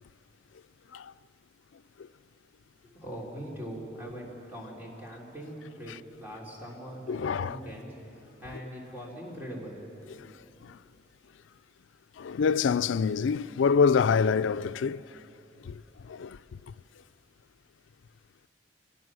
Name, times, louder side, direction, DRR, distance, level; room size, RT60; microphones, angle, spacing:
voice 1, 2.8-9.8, equal, 10° right, 3.5 m, -42 dB
voice 2, 7.1-7.6 10.2-10.3 10.6-10.8 12.2-15.0 15.6-16.4, left 6 dB, 85° left, 0.4 m, -26 dB
24.5 x 17.5 x 6.2 m
head